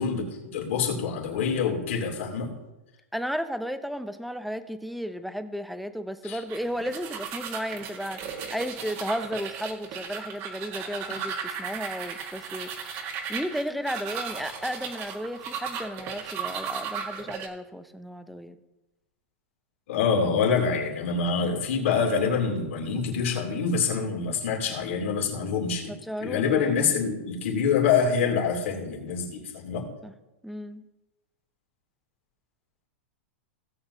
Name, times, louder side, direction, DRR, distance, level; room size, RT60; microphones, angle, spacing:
voice 1, 0.0-2.5 6.2-6.4 19.9-25.9 26.2-29.9, left 6 dB, 75° left, 0 dB, 3.0 m, -26 dB
voice 2, 3.1-12.7 13.3-18.6 25.9-26.7 30.0-30.1 30.4-30.8, equal, ahead, 11 dB, 0.6 m, -34 dB
sound 1, 6.5-17.5, right 6 dB, 45° right, 1.5 m, -36 dB
17.0 x 7.7 x 2.8 m, 1.0 s
hypercardioid pair, 130°, 7 cm